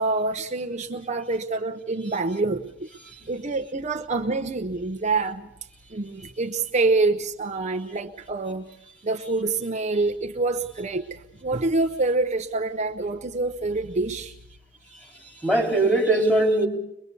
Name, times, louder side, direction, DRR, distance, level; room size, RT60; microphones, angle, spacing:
voice 1, 0.0-2.9 3.3-5.4 5.9-8.7 9.0-14.3, right 3 dB, 35° right, 0.7 m, -26 dB
voice 2, 15.4-16.7, right 2 dB, 5° left, 4.0 m, -21 dB
22.5 x 22.5 x 6.8 m
head